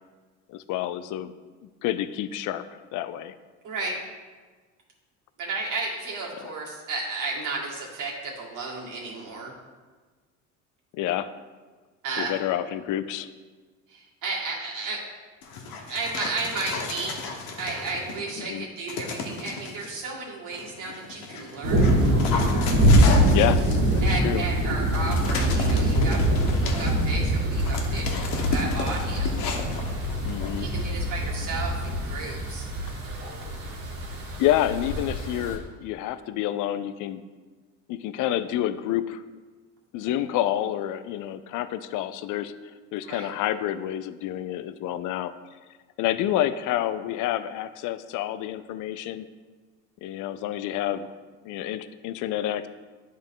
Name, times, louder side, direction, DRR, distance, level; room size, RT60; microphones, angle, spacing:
voice 1, 0.5-1.3 1.8-3.4 6.4-6.5 10.9-11.3 12.2-13.3 18.4-18.7 23.3-23.6 23.9-24.4 30.2-30.7 34.4-37.2 37.9-39.2 39.9-45.3 46.0-49.3 50.0-51.2 51.4-52.7, left 12 dB, 60° left, 12 dB, 0.5 m, -28 dB
voice 2, 3.6-4.0 5.4-9.5 12.0-12.3 13.9-15.0 15.8-17.2 17.6-21.9 24.0-26.2 26.6-29.4 30.6-32.7 43.0-43.3, right 3 dB, 60° right, -3 dB, 2.2 m, -33 dB
Dog, 15.4-18.3 18.9-19.9 20.5-30.9, left 4 dB, 75° left, 1.1 m, -34 dB
sound 1, 21.6-35.5, equal, 90° right, 1.7 m, -24 dB
10.5 x 3.7 x 3.7 m, 1.4 s
supercardioid pair, 95°, 35 cm